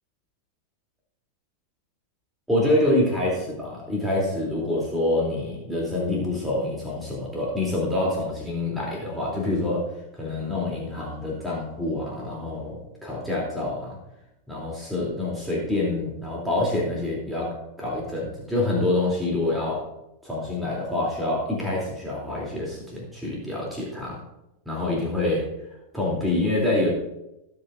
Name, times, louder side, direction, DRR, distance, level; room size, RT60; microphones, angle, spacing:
voice 1, 2.5-9.8 10.1-14.0 14.5-19.8 20.2-24.2 24.6-25.5 25.9-26.9, left 2 dB, 5° right, -5 dB, 3.2 m, -26 dB
19.0 x 7.6 x 2.6 m, 0.90 s
figure-of-eight pair, 90°, 0 cm